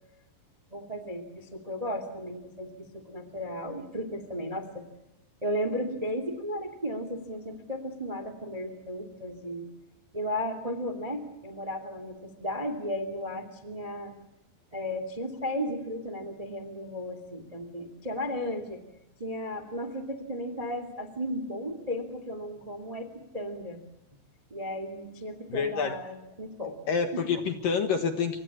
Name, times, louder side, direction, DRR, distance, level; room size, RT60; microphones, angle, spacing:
voice 1, 0.7-4.9 5.4-9.7 10.1-14.1 14.7-18.8 19.2-23.8 24.5-26.8 27.1-27.2, equal, 40° right, 10 dB, 0.5 m, -35 dB
voice 2, 25.5-26.0 26.9-28.4, left 6 dB, 65° left, 6 dB, 2.3 m, -28 dB
28.0 x 25.5 x 7.2 m, 0.91 s
omnidirectional pair, 5.7 m